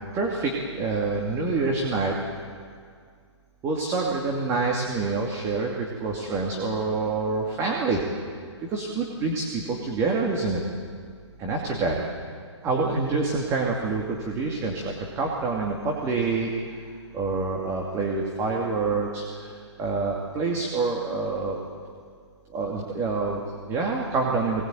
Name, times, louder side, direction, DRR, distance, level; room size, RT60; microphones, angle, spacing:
voice 1, 0.1-2.1 3.6-8.0 8.6-10.6 11.4-12.0 12.6-16.5 17.1-19.5 19.8-21.6 22.5-24.7, right 3 dB, 20° right, -1 dB, 2.5 m, -27 dB
23.0 x 20.0 x 9.2 m, 2.1 s
hypercardioid pair, 145°, 15 cm